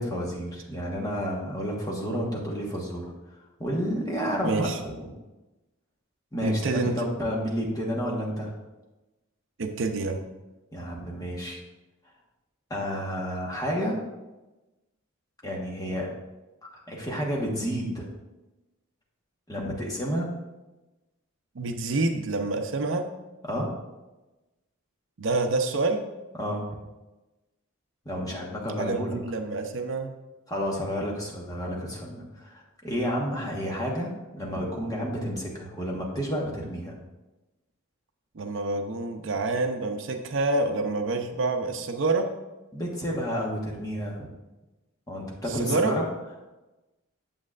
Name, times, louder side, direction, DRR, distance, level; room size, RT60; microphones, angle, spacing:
voice 1, 0.0-3.1 3.6-5.1 6.3-8.5 10.7-11.6 12.7-14.0 15.4-16.1 16.7-18.1 19.5-20.3 23.4-23.7 26.4-26.8 28.0-29.2 30.5-37.0 42.7-44.3 45.1-46.0, equal, 15° left, -2 dB, 1.2 m, -30 dB
voice 2, 4.4-4.8 6.4-7.0 9.6-10.2 21.6-23.1 25.2-26.1 28.8-30.1 38.3-42.3 45.5-46.0, right 3 dB, 60° right, 5 dB, 0.6 m, -27 dB
8.7 x 7.2 x 2.4 m, 1.1 s
head